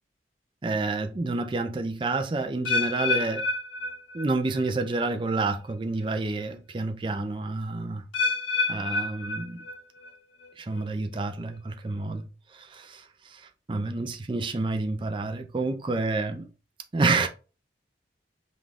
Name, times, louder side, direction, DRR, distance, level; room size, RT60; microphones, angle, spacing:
voice 1, 0.6-3.4 4.1-8.0 8.7-9.6 10.6-16.5 16.9-17.3, right 3 dB, 25° right, 0.4 m, -29 dB
sound 1, 2.6-4.7 4.9-5.4 6.0-6.1 8.1-10.1 10.4-10.8 11.5-11.6, left 3 dB, 85° left, 0.7 m, -29 dB
5.4 x 2.4 x 3.4 m
head